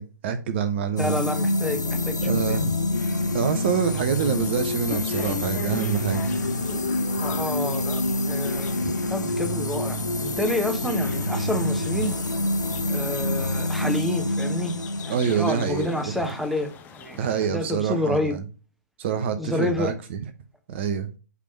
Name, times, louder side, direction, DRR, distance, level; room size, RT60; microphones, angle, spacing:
voice 1, 0.0-1.2 2.2-2.7 3.3-6.2 15.1-16.3 17.1-18.4 19.0-20.2 20.7-21.1, right 7 dB, 40° right, 0.8 m, -26 dB
sound 1, 1.0-16.7, left 2 dB, 75° left, 1.0 m, -27 dB
voice 2, 1.0-2.6 7.2-8.8 9.1-12.2 12.9-14.7 15.0-18.4 19.4-19.9, left 1 dB, ahead, 1.1 m, -29 dB
sound 2, 1.7-13.7, left 4 dB, 35° left, 1.6 m, -39 dB
sound 3, 3.6-17.5, left 7 dB, 15° left, 0.8 m, -46 dB
8.3 x 3.5 x 5.7 m
figure-of-eight pair, 115°, 10 cm